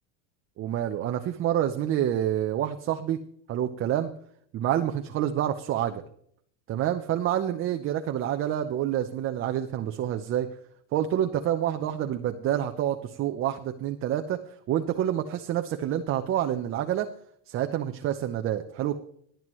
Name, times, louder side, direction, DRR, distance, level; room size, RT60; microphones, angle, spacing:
voice 1, 0.6-3.2 3.5-4.1 4.5-6.0 6.7-10.5 10.9-14.4 14.7-17.1 17.5-19.0, right 11 dB, 30° right, 6 dB, 0.7 m, -28 dB
19.0 x 9.2 x 3.1 m, 0.65 s
supercardioid pair, 135°, 42 cm